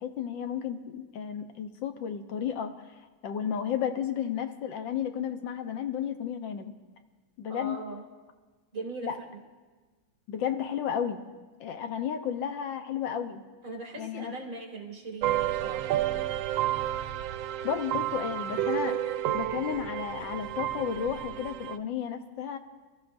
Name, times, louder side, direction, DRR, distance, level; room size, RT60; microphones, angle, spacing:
voice 1, 0.0-2.7 3.2-6.7 7.4-7.8 9.0-9.1 10.3-11.2 11.6-13.4 14.0-14.3 17.6-19.0 19.3-22.6, left 8 dB, 80° left, 7 dB, 1.7 m, -32 dB
voice 2, 7.5-8.0 8.7-9.4 13.6-15.9, right 2 dB, 45° right, 1 dB, 2.6 m, -40 dB
sound 1, 15.2-21.8, right 12 dB, 90° right, 1.3 m, -31 dB
27.5 x 13.5 x 2.6 m, 1.3 s
omnidirectional pair, 2.0 m